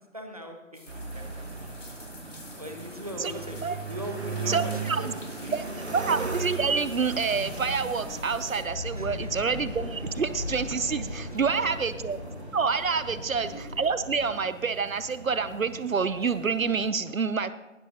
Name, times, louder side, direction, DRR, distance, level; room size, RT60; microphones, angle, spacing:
voice 1, 0.0-1.7 2.5-6.0 8.9-9.3 11.3-11.5 13.1-13.5, equal, 30° right, 4 dB, 1.2 m, -40 dB
sound 1, 0.7-8.6, left 2 dB, 65° left, 2.6 m, -49 dB
sound 2, 0.9-16.9, right 4 dB, 50° right, 1.5 m, -38 dB
voice 2, 4.5-5.1 5.5-5.6 5.9-12.2 12.5-17.5, right 5 dB, 80° right, 14 dB, 0.8 m, -27 dB
sound 3, 6.8-14.4, left 2 dB, 40° left, 1.8 m, -39 dB
19.5 x 11.5 x 2.9 m, 1.1 s
figure-of-eight pair, 175°, 40 cm